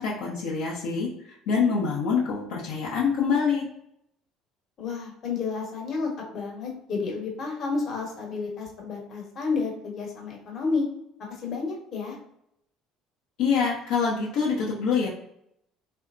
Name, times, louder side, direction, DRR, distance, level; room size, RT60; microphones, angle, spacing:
voice 1, 0.0-3.6 13.4-15.1, left 5 dB, 75° left, -5 dB, 0.7 m, -25 dB
voice 2, 4.8-10.9 11.3-12.2, left 4 dB, 55° left, 0 dB, 1.1 m, -31 dB
3.3 x 2.7 x 2.5 m, 0.76 s
hypercardioid pair, 75°, 0 cm